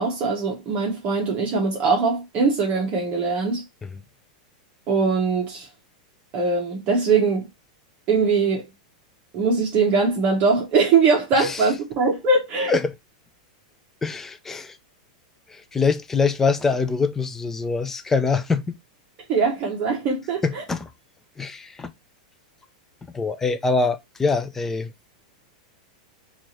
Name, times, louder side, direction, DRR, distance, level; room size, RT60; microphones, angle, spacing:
voice 1, 0.0-3.6 4.9-5.7 6.3-7.4 8.1-8.6 9.3-12.8 19.3-20.6, right 4 dB, 30° right, 0.9 m, -21 dB
voice 2, 11.4-11.7 12.7-12.9 14.0-14.8 15.5-18.8 20.4-20.9 21.4-21.9 23.0-24.9, left 4 dB, 10° left, 0.3 m, -24 dB
4.5 x 2.4 x 2.9 m
supercardioid pair, 160°, 4 cm